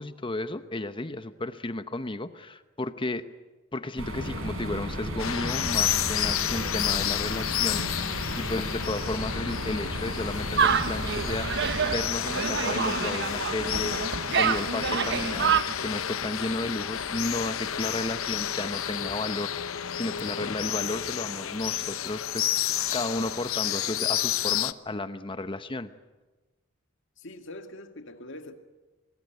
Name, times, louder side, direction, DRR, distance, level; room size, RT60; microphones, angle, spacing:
voice 1, 0.0-3.2 3.7-25.9, left 2 dB, 25° left, 11 dB, 0.9 m, -33 dB
sound 1, 4.0-11.8, equal, 80° right, 7.0 m, -34 dB
sound 2, 5.2-24.7, left 10 dB, 80° left, 0.9 m, -31 dB
sound 3, 10.6-15.6, right 6 dB, 60° right, 1.0 m, -27 dB
voice 2, 27.2-28.5, left 1 dB, 65° left, 6 dB, 2.1 m, -43 dB
25.5 x 21.0 x 9.4 m, 1.2 s
head